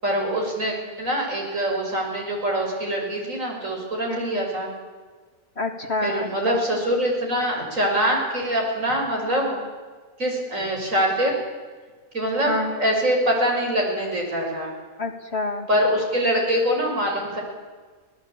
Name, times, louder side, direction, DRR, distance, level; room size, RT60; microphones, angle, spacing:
voice 1, 0.0-4.7 6.0-9.6 10.2-11.4 12.1-14.7 15.7-17.4, equal, 55° right, 0 dB, 6.5 m, -24 dB
voice 2, 4.1-4.4 5.6-6.6 12.5-12.8 15.0-15.7, left 2 dB, 40° left, 5 dB, 1.9 m, -28 dB
25.0 x 18.5 x 8.7 m, 1.4 s
omnidirectional pair, 1.7 m